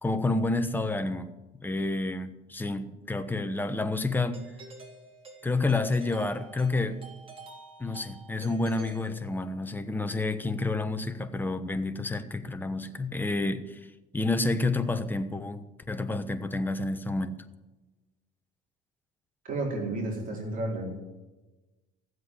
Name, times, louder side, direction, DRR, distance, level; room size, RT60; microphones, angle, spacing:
voice 1, 0.0-1.3 1.6-4.4 5.4-7.0 7.8-13.8 14.1-17.4, left 2 dB, 10° left, 8 dB, 1.1 m, -29 dB
Doorbell, 4.3-9.8, right 2 dB, 30° right, 3.5 m, -49 dB
voice 2, 19.4-21.1, right 2 dB, 45° right, -1 dB, 4.5 m, -32 dB
15.0 x 7.9 x 9.6 m, 1.1 s
cardioid pair, 125°, 19 cm